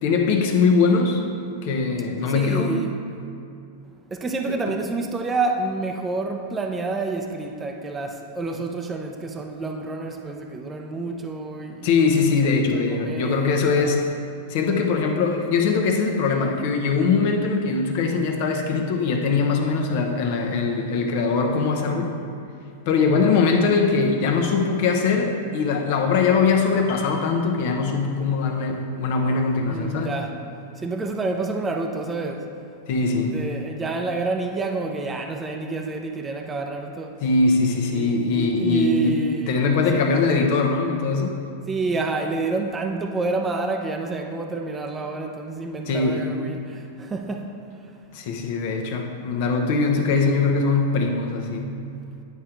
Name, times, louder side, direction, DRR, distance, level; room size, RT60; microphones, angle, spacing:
voice 1, 0.0-1.2 1.6-2.8 4.5-4.6 11.8-14.1 14.5-22.1 22.9-30.1 32.9-33.4 37.2-39.2 39.5-41.4 45.9-46.3 48.1-51.7, left 4 dB, 60° left, 2 dB, 0.9 m, -21 dB
voice 2, 2.3-2.9 4.1-11.9 12.4-13.9 29.7-30.3 30.8-32.4 33.2-37.1 37.9-40.3 41.7-46.6 47.0-47.5, right 3 dB, 15° right, 3 dB, 0.6 m, -28 dB
Piano, 26.9-28.3 28.6-28.8, left 3 dB, 75° left, 1.1 m, -44 dB
9.5 x 3.7 x 4.5 m, 2.5 s
hypercardioid pair, 120°, 0 cm